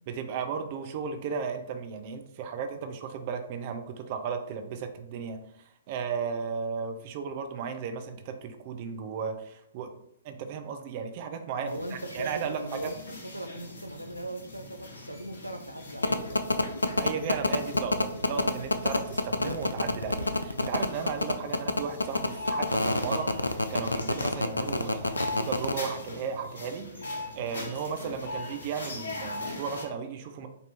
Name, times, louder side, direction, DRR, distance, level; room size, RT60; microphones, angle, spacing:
voice 1, 0.1-5.4 5.9-9.9 10.2-12.9 17.0-23.3 23.7-30.5, right 6 dB, 40° right, 7 dB, 0.5 m, -35 dB
voice 2, 11.6-16.7, right 1 dB, 90° right, 6 dB, 0.4 m, -39 dB
sound 1, 11.7-29.9, left 2 dB, 60° left, 1.0 m, -41 dB
sound 2, 16.0-25.7, left 2 dB, 80° left, 0.3 m, -26 dB
4.2 x 2.6 x 3.3 m, 0.72 s
figure-of-eight pair, 115°, 0 cm